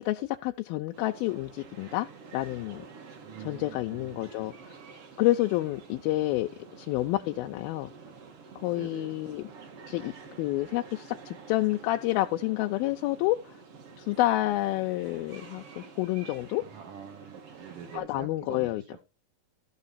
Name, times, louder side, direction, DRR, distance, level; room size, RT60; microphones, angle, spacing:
voice 1, 0.0-2.1 2.3-2.8 3.5-4.7 5.2-6.5 6.8-7.9 8.6-9.4 9.9-10.1 10.4-13.6 14.0-16.6 17.9-18.8, left 16 dB, 85° left, 2.5 m, -29 dB
sound 1, 0.9-18.0, right 5 dB, 45° right, 2.4 m, -49 dB
voice 2, 3.2-4.4 8.7-9.2 16.6-19.0, right 7 dB, 65° right, 3.2 m, -45 dB
14.0 x 6.5 x 4.1 m
omnidirectional pair, 4.2 m